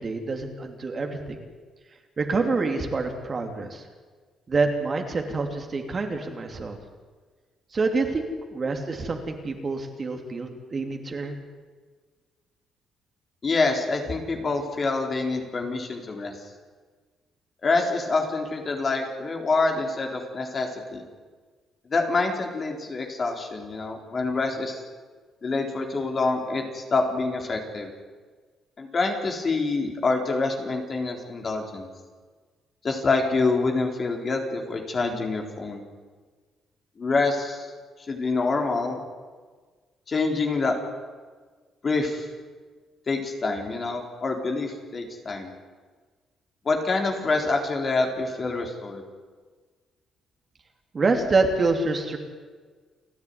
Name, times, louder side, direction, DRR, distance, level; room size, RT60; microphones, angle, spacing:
voice 1, 0.0-1.4 2.2-3.8 4.5-6.8 7.7-11.4 50.9-52.2, right 3 dB, 35° right, 4 dB, 3.0 m, -26 dB
voice 2, 13.4-16.4 17.6-21.0 21.9-24.8 25.4-27.9 28.8-31.9 32.8-35.8 37.0-37.7 38.1-39.0 40.1-40.8 41.8-42.3 43.1-45.5 46.7-49.0, left 3 dB, 40° left, 2 dB, 3.9 m, -26 dB
29.5 x 10.5 x 9.6 m, 1.5 s
cardioid pair, 90°, 0 cm